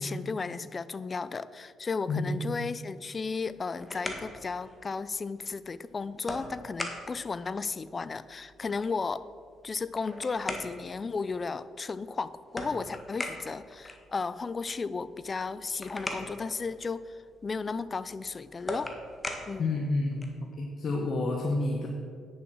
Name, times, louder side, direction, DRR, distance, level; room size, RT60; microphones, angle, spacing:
voice 1, 0.0-9.2 9.6-18.9 19.5-19.7, left 4 dB, 35° left, 16 dB, 0.4 m, -34 dB
sound 1, 3.4-20.5, left 1 dB, 20° left, 1.5 m, -42 dB
voice 2, 19.6-20.2 20.6-21.9, left 2 dB, 55° left, 1 dB, 1.2 m, -29 dB
9.6 x 7.1 x 6.2 m, 2.1 s
cardioid pair, 90°, 0 cm